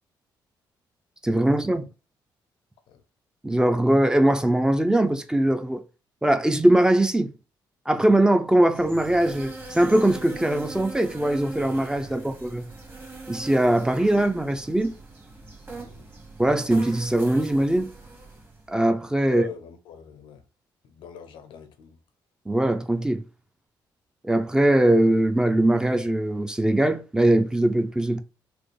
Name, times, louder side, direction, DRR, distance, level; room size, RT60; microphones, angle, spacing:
voice 1, 1.2-1.8 3.4-5.8 6.2-7.3 7.9-12.7 13.3-14.9 16.4-17.9 18.7-19.4 22.5-23.2 24.2-28.2, right 1 dB, 10° right, 0.4 m, -21 dB
sound 1, 8.7-18.7, right 3 dB, 25° right, 1.1 m, -41 dB
voice 2, 15.8-16.1 19.3-20.4 20.8-22.0, left 8 dB, 85° left, 0.6 m, -41 dB
4.2 x 2.4 x 3.2 m
cardioid pair, 105°, 9 cm